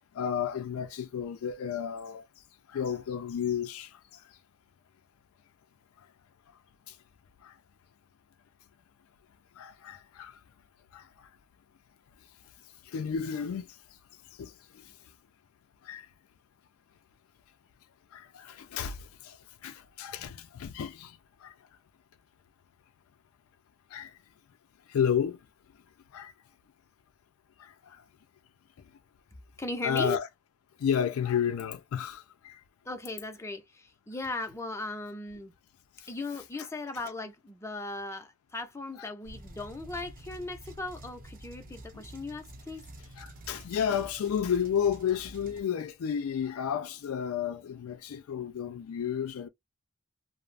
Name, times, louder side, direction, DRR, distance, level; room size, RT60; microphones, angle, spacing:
voice 1, 0.2-2.2 2.7-3.9 7.4-7.5 9.6-10.3 10.9-11.0 12.9-13.7 14.4-14.5 15.8-16.1 18.1-19.0 19.2-19.4 19.6-21.2 21.4-21.5 23.9-24.1 24.9-25.4 26.1-26.3 27.6-27.7 29.8-30.3 30.8-32.6 39.0-39.1 43.2-49.5, left 8 dB, 85° left, 0.3 m, -31 dB
voice 2, 29.6-30.2 32.9-35.5 36.1-42.8, left 2 dB, 15° left, 0.5 m, -37 dB
sound 1, 39.2-45.6, right 1 dB, 40° right, 0.6 m, -48 dB
2.4 x 2.0 x 3.2 m
head